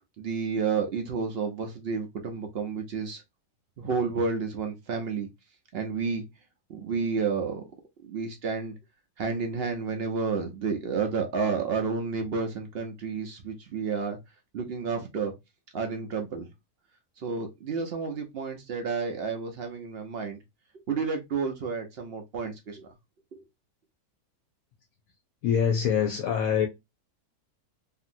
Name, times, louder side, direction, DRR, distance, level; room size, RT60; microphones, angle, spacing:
voice 1, 0.2-3.2 3.8-5.3 5.7-6.2 6.7-7.6 8.0-8.7 9.2-14.2 14.5-15.3 15.7-16.5 17.2-20.4 20.9-22.9 23.3-23.4, right 5 dB, 60° right, 0.6 m, -30 dB
voice 2, 25.4-26.7, left 8 dB, 70° left, 0.9 m, -24 dB
2.8 x 2.6 x 2.5 m
omnidirectional pair, 1.6 m